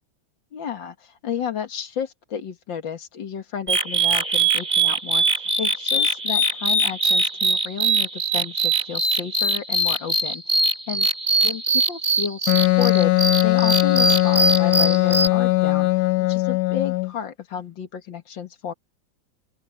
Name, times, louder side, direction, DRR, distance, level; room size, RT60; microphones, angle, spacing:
voice 1, 0.5-10.6 10.9-11.1 11.4-13.1 13.4-15.9 16.2-18.7, left 8 dB, 85° left, 2.4 m, -32 dB
sound 1, 3.7-15.3, right 2 dB, 25° right, 2.8 m, -22 dB
Wind instrument woodwind instrument, 12.5-17.1, left 19 dB, 65° left, 1.3 m, -19 dB
open air
omnidirectional pair, 2.0 m